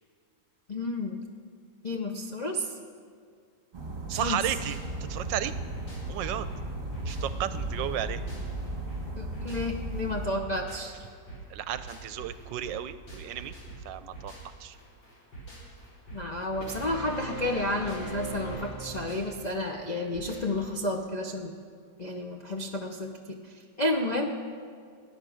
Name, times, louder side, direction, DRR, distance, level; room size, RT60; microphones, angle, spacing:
voice 1, 0.7-1.2 1.8-2.7 4.1-4.4 9.2-10.9 16.1-21.5 22.0-23.5 23.8-24.3, left 1 dB, 50° left, 2 dB, 0.5 m, -31 dB
sound 1, 3.7-10.4, right 2 dB, 25° right, 1.6 m, -35 dB
voice 2, 4.1-4.8 5.1-5.5 6.1-6.5 7.1-8.2 11.5-13.5 13.8-14.3 14.6-14.8, right 11 dB, 75° right, 13 dB, 1.2 m, -33 dB
sound 2, 4.5-20.7, right 3 dB, 70° left, 5.0 m, -46 dB
sound 3, 16.6-19.5, right 1 dB, 30° left, 2.4 m, -38 dB
17.0 x 9.9 x 6.3 m, 2.2 s
omnidirectional pair, 2.1 m